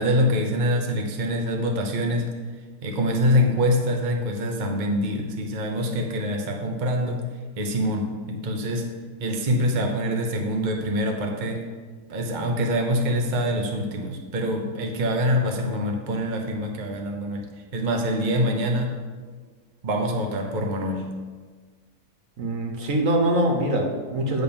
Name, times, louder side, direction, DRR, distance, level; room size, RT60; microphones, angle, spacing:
voice 1, 0.0-2.3 2.8-7.2 7.6-8.9 9.2-11.7 12.1-17.4 17.7-19.0 19.8-21.1, equal, 40° right, 2 dB, 0.8 m, -25 dB
voice 2, 22.4-24.4, right 1 dB, 60° right, 2 dB, 1.5 m, -23 dB
8.7 x 3.9 x 7.0 m, 1.5 s
omnidirectional pair, 1.6 m